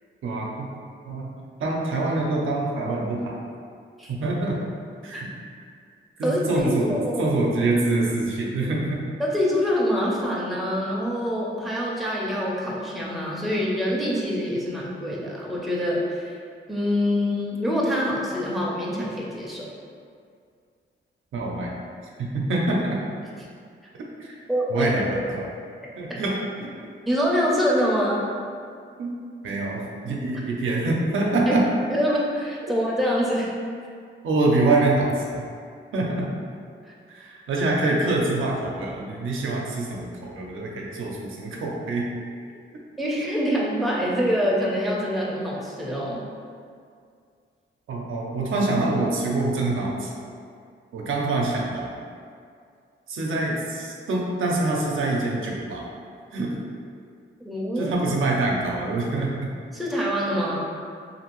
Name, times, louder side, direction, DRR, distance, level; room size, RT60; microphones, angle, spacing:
voice 1, 0.2-0.7 1.0-1.3 1.6-3.4 4.1-4.6 5.0-5.3 6.2-6.9 7.2-9.0 21.3-21.8 22.2-23.0 24.2-24.4 24.7-25.5 26.0-26.4 29.0-29.1 29.4-31.7 34.2-35.5 35.9-36.3 37.1-42.0 47.9-50.1 50.9-52.0 53.1-55.9 56.3-56.5 57.8-59.3, right 2 dB, 90° right, -2 dB, 0.5 m, -25 dB
voice 2, 6.2-7.3 9.2-16.3 16.7-19.7 24.5-25.3 27.1-28.3 31.9-33.5 43.0-46.2 57.4-57.9 59.7-60.6, equal, ahead, -5 dB, 0.5 m, -25 dB
2.6 x 2.5 x 3.0 m, 2.2 s
wide cardioid pair, 115°, 20 cm